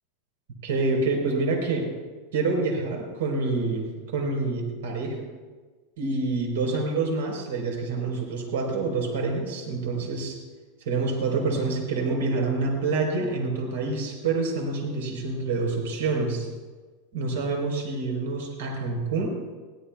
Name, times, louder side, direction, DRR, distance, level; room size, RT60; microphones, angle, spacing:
voice 1, 0.6-1.9 2.3-3.8 4.1-5.2 6.0-10.4 10.8-16.5 17.1-19.3, right 3 dB, 85° right, 1 dB, 4.1 m, -27 dB
21.5 x 17.0 x 2.3 m, 1.4 s
supercardioid pair, 155°, 0 cm